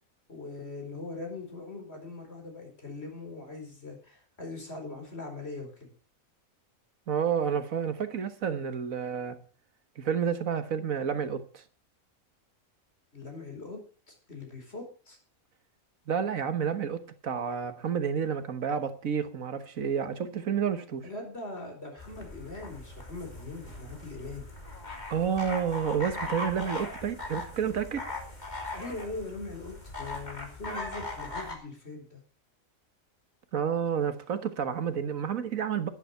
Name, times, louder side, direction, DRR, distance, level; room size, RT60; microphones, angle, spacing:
voice 1, 0.3-5.9 13.1-13.8 14.1-15.2 21.0-24.5 28.7-32.2, left 3 dB, 50° left, 4.9 m, -41 dB
voice 2, 7.1-9.4 10.0-11.6 16.1-21.0 25.1-28.0 33.5-35.9, right 7 dB, 85° right, 1.7 m, -30 dB
sound 1, 22.0-31.5, left 2 dB, 35° left, 3.1 m, -39 dB
11.5 x 11.0 x 5.7 m
omnidirectional pair, 1.4 m